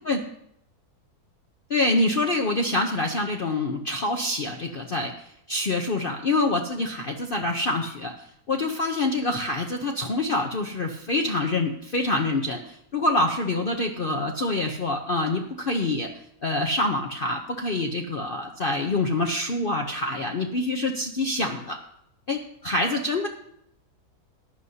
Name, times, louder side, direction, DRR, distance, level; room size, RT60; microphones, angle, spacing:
voice 1, 1.7-16.1 16.4-21.8 22.3-23.3, left 2 dB, 45° left, 3 dB, 0.7 m, -26 dB
15.0 x 11.0 x 2.8 m, 0.75 s
omnidirectional pair, 1.7 m